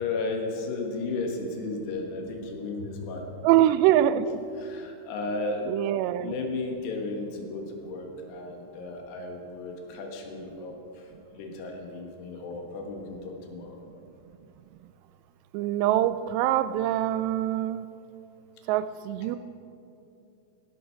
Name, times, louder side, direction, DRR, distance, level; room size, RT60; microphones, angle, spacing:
voice 1, 0.0-3.2 4.1-4.2 4.6-5.8 6.2-13.8, left 3 dB, 80° left, 2 dB, 3.6 m, -34 dB
voice 2, 3.4-4.4 5.7-6.4 15.5-17.9 18.7-19.4, right 12 dB, 90° right, 14 dB, 2.7 m, -24 dB
16.5 x 11.0 x 4.6 m, 2.7 s
omnidirectional pair, 4.8 m